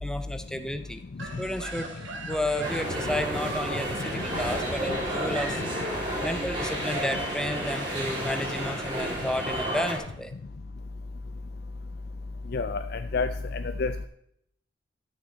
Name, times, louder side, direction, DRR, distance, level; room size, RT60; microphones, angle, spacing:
voice 1, 0.0-1.0 1.4-5.6 6.2-10.3, left 1 dB, 5° left, 9 dB, 0.6 m, -32 dB
sound 1, 1.2-8.1, right 2 dB, 90° right, 2.3 m, -42 dB
sound 2, 2.6-10.0, equal, 25° right, 3.0 m, -31 dB
voice 2, 12.5-14.1, left 4 dB, 55° left, 8 dB, 0.4 m, -30 dB
13.0 x 6.3 x 4.2 m, 0.72 s
head